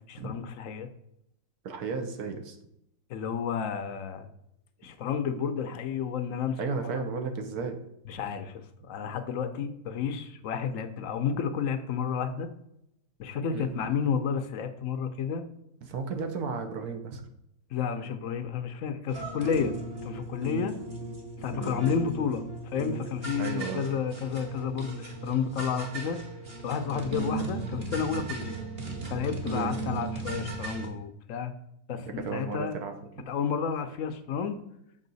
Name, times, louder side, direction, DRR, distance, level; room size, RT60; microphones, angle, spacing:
voice 1, 0.1-0.9 3.1-4.3 4.8-6.6 8.1-12.5 13.2-15.4 17.7-19.7 20.1-20.7 21.4-26.2 26.6-28.6 29.0-31.5 31.9-32.7 33.3-34.6, left 7 dB, 60° left, 8 dB, 0.9 m, -31 dB
voice 2, 1.6-2.6 6.6-7.8 13.5-13.7 15.8-17.2 21.5-21.9 23.4-23.9 26.9-27.1 29.5-29.8 32.2-32.9, right 4 dB, 65° right, 5 dB, 1.3 m, -34 dB
sound 1, 19.1-30.9, right 3 dB, 40° right, 1.3 m, -37 dB
6.4 x 5.6 x 4.0 m, 0.78 s
omnidirectional pair, 1.8 m